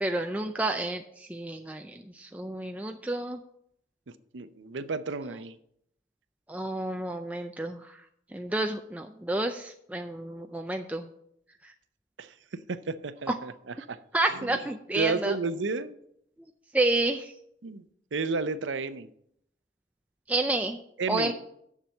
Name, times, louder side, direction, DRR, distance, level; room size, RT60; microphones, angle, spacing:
voice 1, 0.0-3.4 6.5-8.0 8.3-11.1 13.3-13.4 14.1-15.4 16.7-17.3 20.3-20.8 21.1-21.3, right 2 dB, 10° right, 5 dB, 0.4 m, -30 dB
voice 2, 4.3-5.6 12.2-12.3 12.7-13.5 13.9-14.0 14.3-14.5 14.9-15.9 17.6-17.8 18.1-19.1 21.0-21.3, right 4 dB, 90° right, 13 dB, 0.6 m, -31 dB
7.4 x 6.8 x 7.5 m, 0.73 s
head